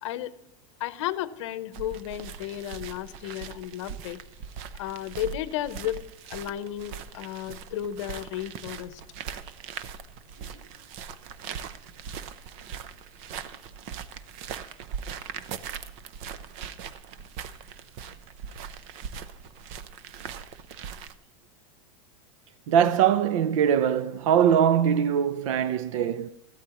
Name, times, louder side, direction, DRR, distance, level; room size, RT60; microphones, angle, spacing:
voice 1, 0.0-0.3 0.8-4.2 4.8-6.0 6.3-9.0, left 12 dB, 65° left, 0.9 m, -33 dB
sound 1, 1.7-21.1, right 7 dB, 35° right, 0.6 m, -40 dB
voice 2, 22.7-26.3, right 9 dB, 75° right, 0.6 m, -22 dB
14.5 x 12.5 x 3.0 m
supercardioid pair, 170°, 17 cm